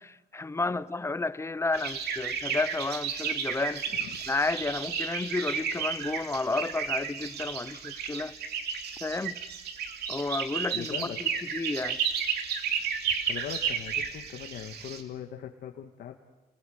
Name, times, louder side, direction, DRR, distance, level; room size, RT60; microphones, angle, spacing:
voice 1, 0.0-3.8 4.3-8.3 9.0-9.4 10.1-12.0, left 3 dB, 15° left, 0.8 m, -31 dB
sound 1, 1.7-15.0, right 7 dB, 85° right, 2.7 m, -33 dB
voice 2, 10.7-11.2 13.2-16.2, left 10 dB, 75° left, 1.7 m, -40 dB
30.0 x 21.0 x 8.0 m
cardioid pair, 105°, 17 cm